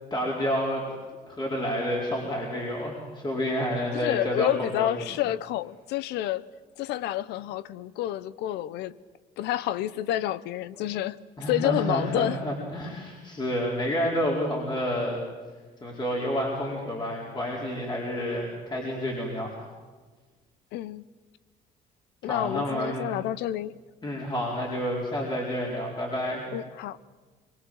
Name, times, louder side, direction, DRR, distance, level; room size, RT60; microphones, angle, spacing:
voice 1, 0.1-0.8 1.3-4.9 11.4-15.2 15.8-19.6 22.2-23.1 24.0-26.4, equal, 25° left, 4.8 m, -29 dB
voice 2, 3.9-6.4 6.8-9.0 9.4-12.4 20.7-21.0 22.2-23.7 26.5-27.0, left 13 dB, 85° left, 0.8 m, -29 dB
23.5 x 23.0 x 7.9 m
cardioid pair, 110°, 17 cm